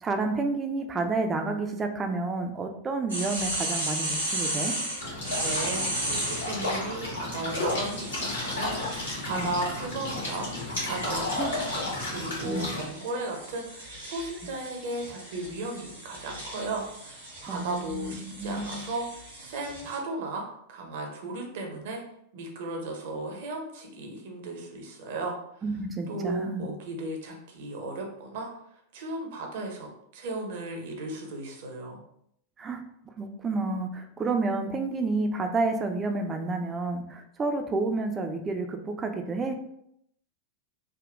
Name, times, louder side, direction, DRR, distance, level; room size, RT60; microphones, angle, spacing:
voice 1, 0.0-4.7 9.3-9.5 11.4-11.5 12.4-12.7 17.5-18.9 25.6-26.6 32.6-39.6, right 3 dB, 20° right, 5 dB, 0.4 m, -30 dB
sound 1, 3.1-6.5 7.8-20.0, right 1 dB, 75° right, 1.1 m, -36 dB
sound 2, 5.0-12.8, left 2 dB, 75° left, 1.2 m, -32 dB
voice 2, 5.4-11.7 12.1-20.4 20.7-22.0 22.3-25.3 26.1-28.5 28.9-32.0, right 2 dB, 55° right, 1 dB, 0.7 m, -35 dB
3.5 x 2.3 x 2.4 m, 0.73 s
figure-of-eight pair, 90°, 0 cm